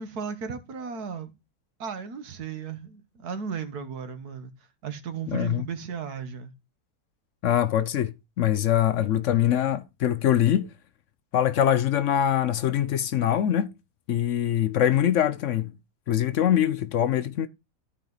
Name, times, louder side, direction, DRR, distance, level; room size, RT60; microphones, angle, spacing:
voice 1, 0.0-1.4 1.8-4.5 4.8-6.5, right 6 dB, 85° right, 1.7 m, -35 dB
voice 2, 5.3-5.6 7.4-10.7 11.3-13.7 14.1-15.7 16.1-17.5, left 10 dB, 65° left, 0.8 m, -23 dB
13.5 x 4.8 x 3.9 m
omnidirectional pair, 1.6 m